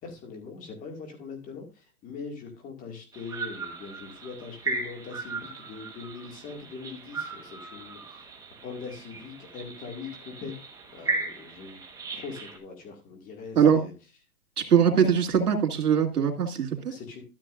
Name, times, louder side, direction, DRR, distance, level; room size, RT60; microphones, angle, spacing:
voice 1, 0.0-8.2 8.6-10.5 10.9-11.8 12.1-13.9 14.9-15.0 16.9-17.2, left 5 dB, 20° left, 4 dB, 2.1 m, -41 dB
sound 1, 3.1-12.6, right 3 dB, 10° right, 1.2 m, -37 dB
voice 2, 14.7-16.9, right 7 dB, 85° right, 4 dB, 2.6 m, -21 dB
13.0 x 7.5 x 2.5 m, 0.30 s
hypercardioid pair, 150°, 45 cm